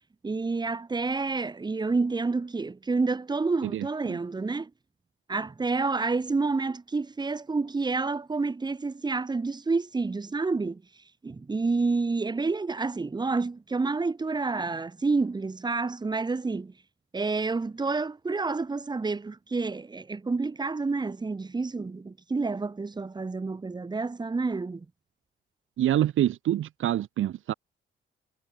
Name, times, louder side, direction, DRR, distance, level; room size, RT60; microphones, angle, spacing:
voice 1, 0.2-4.7 5.3-10.8 11.2-16.7 17.1-24.9, right 3 dB, 20° right, 5.7 m, -29 dB
voice 2, 3.6-4.2 25.8-27.5, right 12 dB, 80° right, 2.7 m, -26 dB
wide cardioid pair, 160°, 20 cm